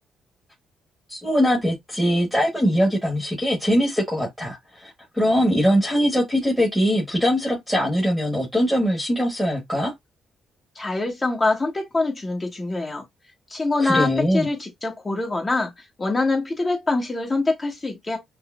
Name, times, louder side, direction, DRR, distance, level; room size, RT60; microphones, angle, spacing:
voice 1, 1.1-9.9 13.8-14.5, equal, ahead, 1.3 m, -22 dB
voice 2, 10.7-13.0 13.5-15.7 16.0-18.2, left 3 dB, 25° left, 1.3 m, -24 dB
5.4 x 2.0 x 2.4 m
cardioid pair, 90°, 0 cm